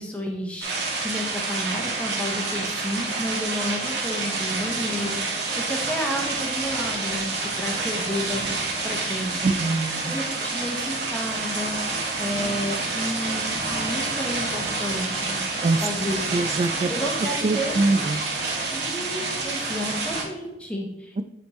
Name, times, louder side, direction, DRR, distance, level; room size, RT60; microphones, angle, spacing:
voice 1, 0.0-8.6 8.8-9.5 10.0-15.4 15.8-16.2 16.9-17.8 18.7-21.2, equal, 5° left, 0 dB, 1.0 m, -31 dB
sound 1, 0.6-20.2, right 3 dB, 65° right, 1.3 m, -28 dB
voice 2, 9.4-10.1 15.6-15.8 16.3-16.9 17.4-18.2 21.2-21.3, right 3 dB, 35° right, 11 dB, 0.3 m, -23 dB
9.1 x 3.4 x 3.1 m, 0.94 s
head